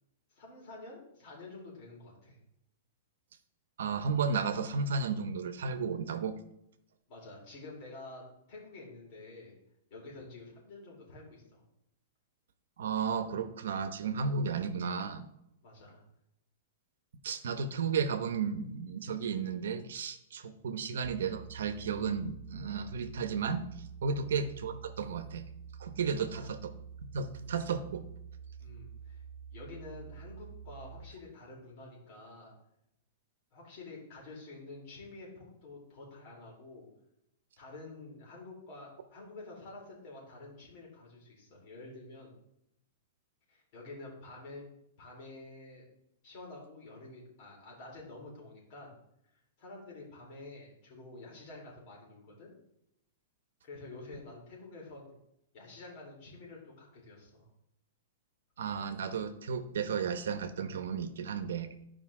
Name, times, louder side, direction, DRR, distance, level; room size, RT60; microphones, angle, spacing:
voice 1, 0.3-2.4 7.1-8.2 8.5-9.6 9.9-11.6 15.6-16.0 20.8-20.9 24.1-24.3 26.1-26.5 28.6-29.2 29.5-32.6 33.5-36.9 37.6-42.3 43.5-44.7 45.0-45.9 46.2-49.0 49.6-52.5 53.6-55.1 55.5-57.5, left 2 dB, 40° left, -3 dB, 3.9 m, -49 dB
voice 2, 3.8-6.4 12.8-15.2 17.2-23.6 24.0-25.5 25.8-26.6 27.1-28.1 58.6-61.7, right 5 dB, 85° right, 10 dB, 0.9 m, -33 dB
sound 1, 21.0-31.0, right 7 dB, 10° right, 1.0 m, -48 dB
13.0 x 5.3 x 3.7 m, 0.79 s
supercardioid pair, 160°, 0 cm